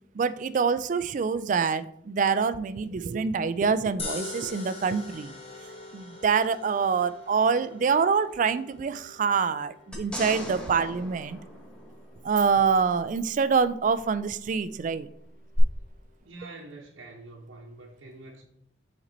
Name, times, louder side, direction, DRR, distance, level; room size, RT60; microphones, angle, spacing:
voice 1, 0.1-5.3 5.9-11.4 12.2-15.1, right 5 dB, 40° right, 14 dB, 0.3 m, -25 dB
sound 1, 4.0-16.3, left 3 dB, 30° left, 1.0 m, -45 dB
sound 2, 9.9-12.4 15.5-15.6, equal, 5° left, 1.0 m, -38 dB
voice 2, 16.2-18.4, right 2 dB, 80° right, -3 dB, 0.9 m, -45 dB
5.9 x 4.3 x 4.0 m, 0.72 s
head